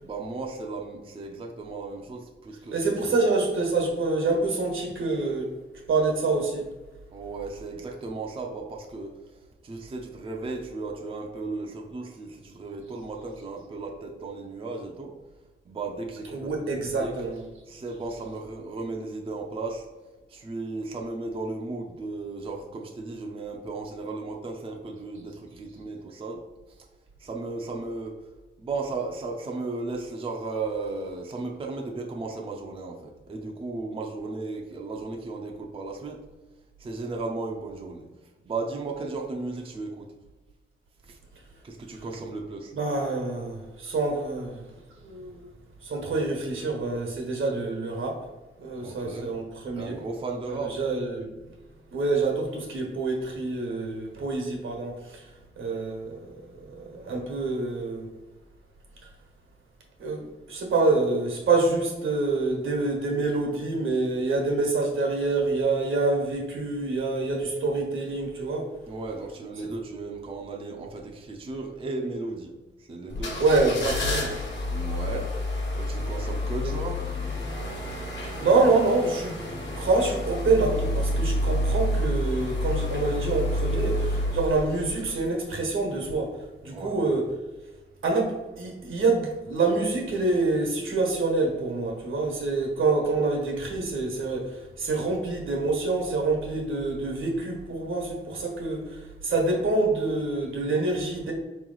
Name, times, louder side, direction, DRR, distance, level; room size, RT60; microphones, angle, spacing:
voice 1, 0.0-3.1 7.1-9.1 9.6-15.1 15.6-17.1 17.7-19.9 20.3-26.4 27.2-28.2 28.6-36.2 36.8-38.1 38.4-40.1 41.1-41.2 41.6-42.7 48.8-49.3 49.7-50.8 68.9-72.5 72.8-73.4 74.7-75.3 75.7-77.0 86.7-87.0, right 3 dB, 30° right, 0 dB, 0.5 m, -35 dB
voice 2, 2.7-5.5 5.9-6.6 16.3-17.4 42.7-44.6 45.0-45.4 45.8-48.2 48.6-50.0 50.5-51.3 51.9-55.3 55.6-58.1 60.0-68.7 69.6-69.7 73.4-74.4 76.6-76.7 78.4-79.4 79.8-86.4 86.6-87.3 88.0-101.3, right 3 dB, 80° right, 1 dB, 1.2 m, -26 dB
sound 1, 73.1-85.6 86.0-86.1, left 1 dB, 65° left, 1.2 m, -29 dB
4.5 x 3.1 x 3.8 m, 1.1 s
wide cardioid pair, 160°, 20 cm